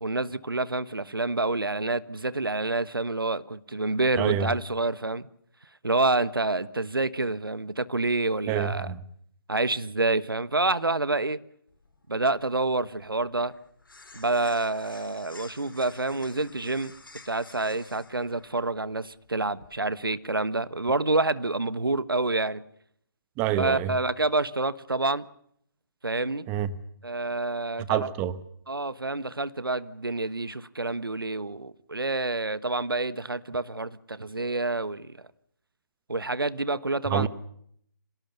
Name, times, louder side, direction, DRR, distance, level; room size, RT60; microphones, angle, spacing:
voice 1, 0.0-5.3 5.8-8.9 9.5-11.4 12.1-13.5 14.1-16.9 17.2-22.6 23.6-25.2 26.0-26.4 27.0-28.1 28.7-35.2 36.1-37.3, right 2 dB, 85° right, 1.3 m, -28 dB
voice 2, 4.2-4.5 8.5-9.0 23.4-23.9 26.5-26.7 27.9-28.4 37.1-37.3, right 10 dB, 20° right, 1.1 m, -27 dB
sound 1, 11.7-20.1, left 3 dB, 75° left, 5.5 m, -51 dB
26.5 x 18.0 x 7.0 m
figure-of-eight pair, 140°, 11 cm